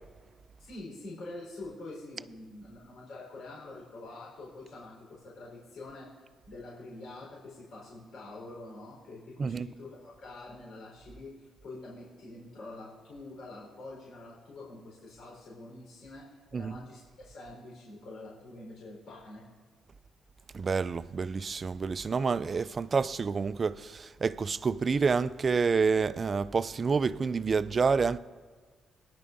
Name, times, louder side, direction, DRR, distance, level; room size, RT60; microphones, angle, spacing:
voice 1, 0.6-6.1 6.5-19.5, left 2 dB, 70° left, 4.3 m, -46 dB
voice 2, 20.5-28.2, right 5 dB, 40° right, 0.3 m, -28 dB
18.5 x 10.5 x 2.7 m
cardioid pair, 90°, 0 cm